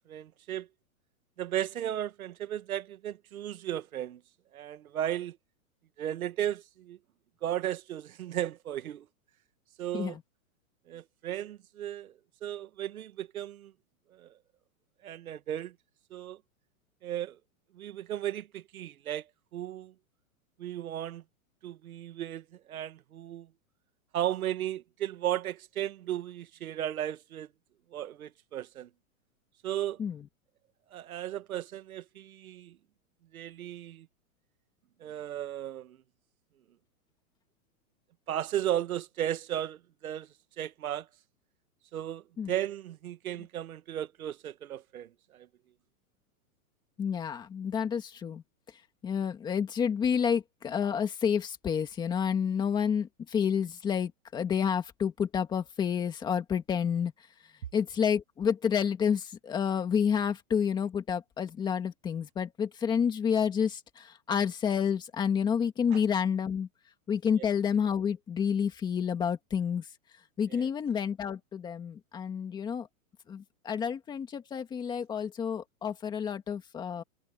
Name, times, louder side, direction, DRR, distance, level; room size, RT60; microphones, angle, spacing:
voice 1, 0.1-0.7 1.4-4.2 4.5-5.4 6.0-7.0 7.4-9.1 9.8-10.2 10.9-12.1 12.4-13.7 14.1-14.4 15.0-15.7 16.1-16.4 17.0-17.4 17.7-19.9 20.6-21.2 21.6-23.5 24.1-27.5 27.9-28.9 29.6-30.0 30.9-32.8 33.3-34.1 35.0-36.0 38.3-40.3 40.6-41.1 41.9-45.5 65.9-66.0 70.5-70.7, right 11 dB, 75° right, 1.6 m, -35 dB
voice 2, 47.0-48.4 49.0-57.1 57.7-66.7 67.1-69.9 70.4-72.9 73.3-77.0, left 7 dB, 10° left, 1.8 m, -29 dB
hypercardioid pair, 175°, 43 cm